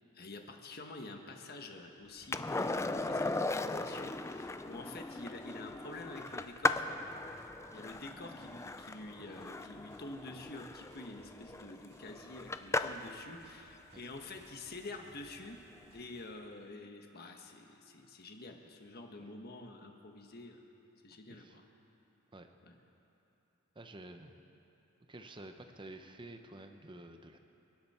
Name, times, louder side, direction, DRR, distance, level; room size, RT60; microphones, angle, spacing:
voice 1, 0.1-6.9 7.3-15.6 15.9-20.7 21.0-21.6 22.6-22.8, left 2 dB, 50° left, 3 dB, 1.5 m, -48 dB
sound 1, 2.0-16.0, equal, 85° right, 3.8 m, -66 dB
Skateboard, 2.3-13.2 15.7-15.8, left 2 dB, 15° left, 0.4 m, -37 dB
voice 2, 23.7-24.3 25.1-27.4, right 2 dB, 25° right, 6 dB, 0.8 m, -50 dB
29.5 x 10.5 x 4.4 m, 2.9 s
head